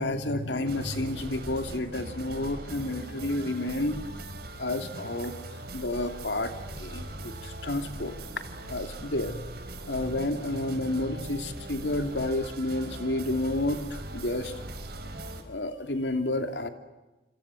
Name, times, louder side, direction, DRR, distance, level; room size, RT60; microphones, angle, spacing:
voice 1, 0.0-4.0 4.6-5.4 5.7-8.1 8.7-9.3 9.9-14.5 15.5-16.7, left 1 dB, 80° left, 7 dB, 2.8 m, -30 dB
sound 1, 0.6-15.4, right 1 dB, 65° right, 4.6 m, -40 dB
28.0 x 26.5 x 7.7 m, 1.1 s
head